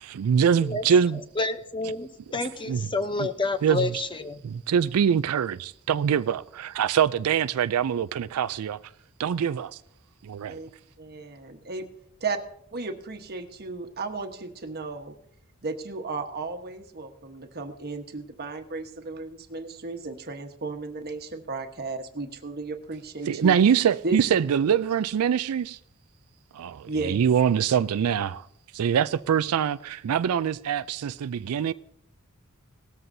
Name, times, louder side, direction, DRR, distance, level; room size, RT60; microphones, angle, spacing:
voice 1, 0.2-1.2 2.7-2.8 3.6-3.9 4.4-8.8 9.2-9.8 10.2-10.6 23.3-25.8 26.5-28.5 28.7-31.7, right 8 dB, 80° right, 0.4 m, -24 dB
voice 2, 1.4-4.4, left 3 dB, 20° left, 0.7 m, -29 dB
voice 3, 11.0-11.8 12.2-12.4 12.7-15.1 15.6-23.6 24.0-24.3 26.9-27.2, right 3 dB, 45° right, 1.2 m, -34 dB
18.0 x 13.5 x 2.7 m
head